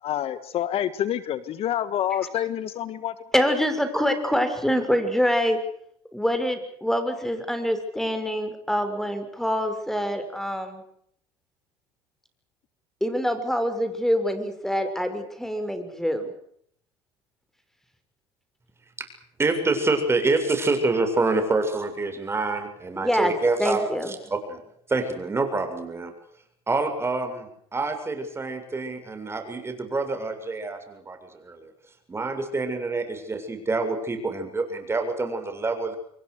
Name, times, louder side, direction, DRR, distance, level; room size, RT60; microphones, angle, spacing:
voice 1, 0.0-3.1, left 11 dB, 55° left, 14 dB, 1.6 m, -27 dB
voice 2, 3.3-5.6 6.1-10.8 13.0-16.3 23.0-23.3 23.6-24.1, equal, 5° left, 9 dB, 6.5 m, -25 dB
voice 3, 19.4-24.6 24.9-26.1 26.7-31.7 32.1-36.0, right 3 dB, 20° right, 7 dB, 7.4 m, -27 dB
27.5 x 23.0 x 6.7 m, 0.67 s
supercardioid pair, 90°, 12 cm